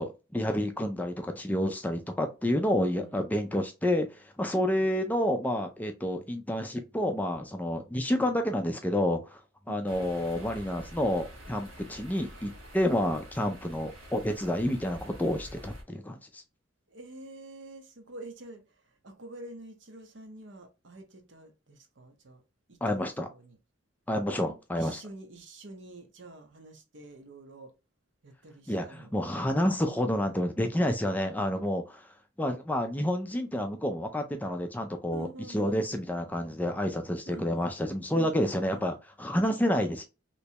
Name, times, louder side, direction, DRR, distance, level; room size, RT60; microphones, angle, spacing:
voice 1, 0.0-9.4 9.7-16.4 22.8-23.3 24.1-25.0 28.7-32.1 32.4-40.0, left 1 dB, 10° left, 0.3 m, -29 dB
sound 1, 9.9-15.8, equal, 90° right, 1.3 m, -47 dB
voice 2, 16.9-22.4 22.7-23.6 24.7-27.7 28.2-29.1 35.1-35.9 37.3-37.5 38.1-38.9, right 2 dB, 65° right, 0.8 m, -47 dB
3.3 x 3.0 x 2.8 m
head